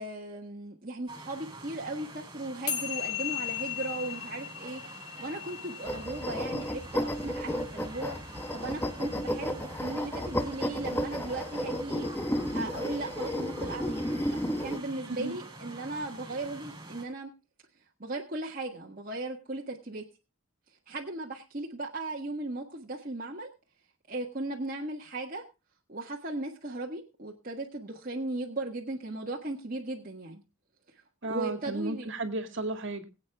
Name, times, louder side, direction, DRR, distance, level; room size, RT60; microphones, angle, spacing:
voice 1, 0.0-17.3 18.0-20.0 20.9-23.5 24.1-25.4 25.9-30.4 30.9-31.0 31.3-32.1, right 2 dB, 40° right, -2 dB, 1.6 m, -37 dB
sound 1, 1.1-17.0, right 2 dB, 20° right, 4.5 m, -46 dB
sound 2, 2.7-9.2, left 11 dB, 50° left, 3.1 m, -38 dB
sound 3, 5.9-14.8, left 1 dB, 10° left, 1.1 m, -33 dB
voice 2, 15.1-15.4 31.2-33.0, right 2 dB, 55° right, 7 dB, 2.1 m, -34 dB
22.0 x 8.6 x 3.5 m, 0.30 s
head